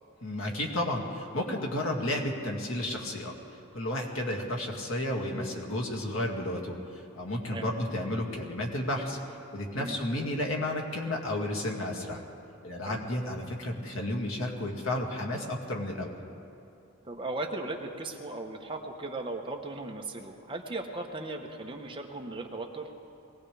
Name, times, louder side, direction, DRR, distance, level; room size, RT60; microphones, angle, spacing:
voice 1, 0.2-3.3 3.7-9.2 9.5-12.2 12.6-16.1, left 1 dB, 90° left, 0 dB, 2.1 m, -32 dB
voice 2, 17.0-22.9, right 2 dB, 25° right, 2 dB, 1.1 m, -37 dB
22.0 x 18.0 x 3.4 m, 2.7 s
head